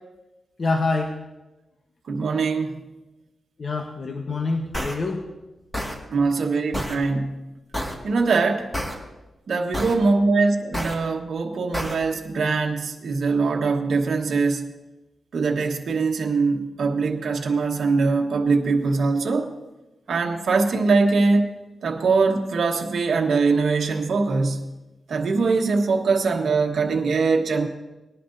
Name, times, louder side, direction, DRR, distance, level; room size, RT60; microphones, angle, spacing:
voice 1, 0.6-1.1 3.6-5.2, left 3 dB, 50° left, 3 dB, 1.1 m, -26 dB
voice 2, 2.1-2.8 6.1-7.4 8.0-8.7 9.5-14.6 15.3-19.5 20.1-21.5 21.8-24.7 25.1-27.7, right 4 dB, 70° right, 1 dB, 1.3 m, -22 dB
sound 1, 4.7-4.9 5.7-6.0 6.7-7.0 7.7-8.0 8.7-8.9 9.7-10.0 10.7-10.9 11.7-11.9, equal, 10° left, 2.0 m, -28 dB
19.5 x 11.0 x 2.7 m, 1.1 s
cardioid pair, 85°, 0 cm